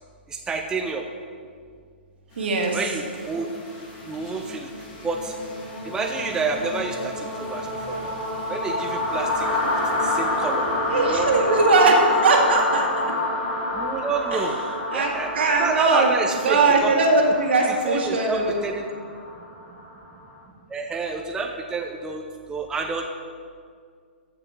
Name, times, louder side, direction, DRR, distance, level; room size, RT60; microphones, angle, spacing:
voice 1, 0.3-1.1 2.7-3.5 4.1-4.7 5.0-5.3 5.8-8.1 8.5-9.5 10.0-11.3 13.7-14.6 14.9-16.9 17.9-18.9 20.7-22.2 22.5-23.1, right 4 dB, 10° right, 3 dB, 0.6 m, -28 dB
sound 1, 2.4-20.2, left 2 dB, 35° left, 2.7 m, -29 dB
voice 2, 2.4-2.8 10.9-13.1 14.3-14.5 14.9-16.1 16.4-18.6, right 3 dB, 70° right, 0 dB, 2.1 m, -20 dB
14.0 x 4.9 x 5.0 m, 2.1 s
hypercardioid pair, 125°, 6 cm